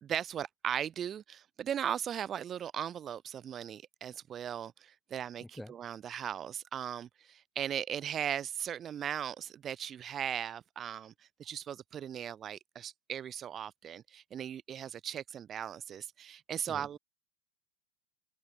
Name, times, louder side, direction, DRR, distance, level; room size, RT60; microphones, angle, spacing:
voice 1, 0.0-11.1 11.4-17.0, right 9 dB, 25° right, 0.6 m, -38 dB
voice 2, 5.4-5.7 16.7-17.0, left 1 dB, 5° left, 1.0 m, -47 dB
figure-of-eight pair, 90°, 0 cm